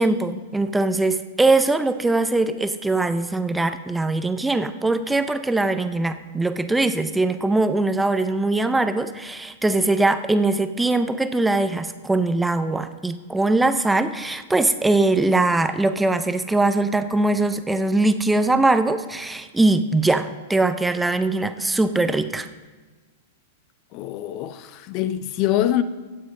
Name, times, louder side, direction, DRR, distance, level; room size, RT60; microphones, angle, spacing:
voice 1, 0.0-22.5, right 2 dB, 10° right, 0.6 m, -21 dB
voice 2, 23.9-25.8, left 12 dB, 45° left, 0.6 m, -24 dB
16.5 x 7.8 x 5.3 m
hypercardioid pair, 105°, 0 cm